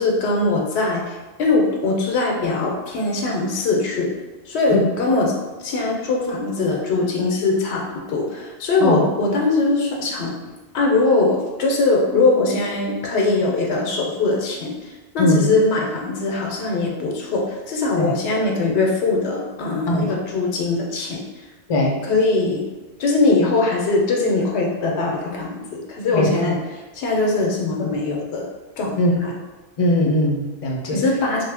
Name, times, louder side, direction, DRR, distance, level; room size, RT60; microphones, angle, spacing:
voice 1, 0.0-4.1 4.5-5.3 5.6-10.4 10.7-21.2 22.1-22.6 23.0-28.5 28.8-29.3 30.9-31.4, left 3 dB, 85° left, -1 dB, 0.9 m, -21 dB
voice 2, 26.1-26.5 29.0-29.1 29.8-31.0, left 1 dB, 45° left, -1 dB, 0.5 m, -20 dB
3.0 x 2.0 x 3.3 m, 1.2 s
omnidirectional pair, 1.1 m